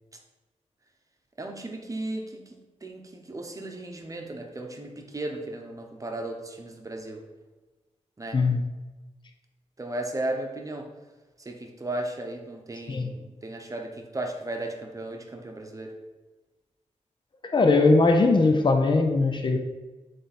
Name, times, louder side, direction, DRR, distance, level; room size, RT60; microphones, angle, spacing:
voice 1, 1.4-7.2 8.2-8.4 9.8-10.9 11.4-15.9, right 2 dB, 30° right, 3 dB, 0.9 m, -35 dB
voice 2, 17.4-19.6, left 3 dB, 40° left, 5 dB, 0.7 m, -20 dB
7.3 x 3.5 x 4.3 m, 1.2 s
wide cardioid pair, 95°, 12 cm